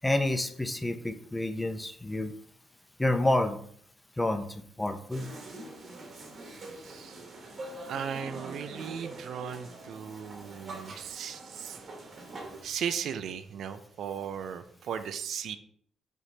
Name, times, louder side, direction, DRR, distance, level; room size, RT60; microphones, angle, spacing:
voice 1, 0.0-2.3 3.0-3.7 4.2-5.3, left 1 dB, 10° left, 8 dB, 0.5 m, -29 dB
sound 1, 5.1-12.6, right 2 dB, 50° right, 1.1 m, -44 dB
voice 2, 6.8-7.2 7.9-11.8 12.6-15.6, right 8 dB, 70° right, 10 dB, 0.4 m, -36 dB
5.0 x 3.1 x 2.7 m, 0.62 s
cardioid pair, 90°, 0 cm